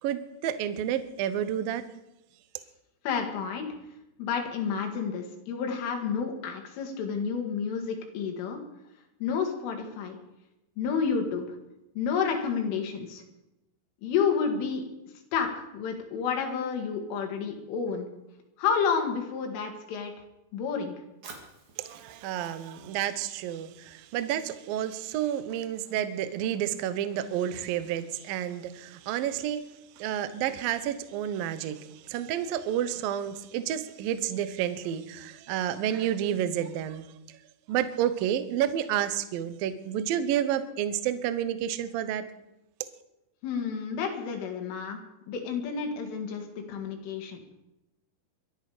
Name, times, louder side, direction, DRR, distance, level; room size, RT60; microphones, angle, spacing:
voice 1, 0.0-1.8 21.8-29.7 30.0-37.4 37.7-42.3, right 10 dB, 85° right, 11 dB, 2.0 m, -30 dB
voice 2, 3.1-3.7 4.2-8.6 9.2-10.2 10.8-11.5 12.0-13.2 14.0-14.8 15.3-18.1 18.6-20.1 20.5-21.0 43.4-45.0 45.3-47.6, left 6 dB, 85° left, 3 dB, 4.6 m, -30 dB
Fire, 21.2-25.2, right 4 dB, 45° right, 3.2 m, -53 dB
24.0 x 10.5 x 5.0 m, 0.91 s
omnidirectional pair, 5.6 m